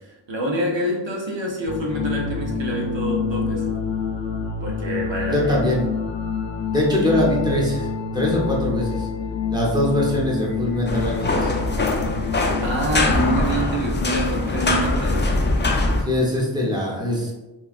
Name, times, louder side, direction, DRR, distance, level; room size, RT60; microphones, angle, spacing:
voice 1, 0.3-3.7 4.6-5.6 12.6-15.3, equal, 80° right, -1 dB, 0.8 m, -26 dB
sound 1, 1.7-13.6, left 5 dB, 75° left, 0.6 m, -27 dB
voice 2, 5.3-5.9 6.7-7.9 8.1-9.1 9.5-11.5 16.0-17.3, left 1 dB, 10° right, -4 dB, 0.8 m, -22 dB
sound 2, 10.9-16.0, left 2 dB, 25° left, 0.3 m, -22 dB
3.0 x 2.3 x 2.4 m, 1.1 s
wide cardioid pair, 60°, 44 cm